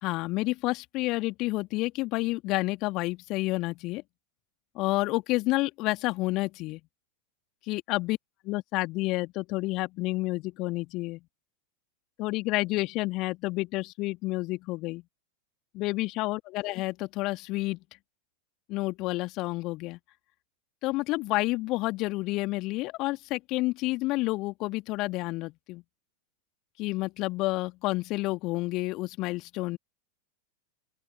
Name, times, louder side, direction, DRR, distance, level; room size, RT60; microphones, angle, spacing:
voice 1, 0.0-4.0 4.7-6.8 7.6-8.2 8.4-11.2 12.2-15.0 15.7-17.8 18.7-20.0 20.8-25.8 26.8-29.8, left 21 dB, 40° left, 2.1 m, -29 dB
open air
figure-of-eight pair, 90°, 0 cm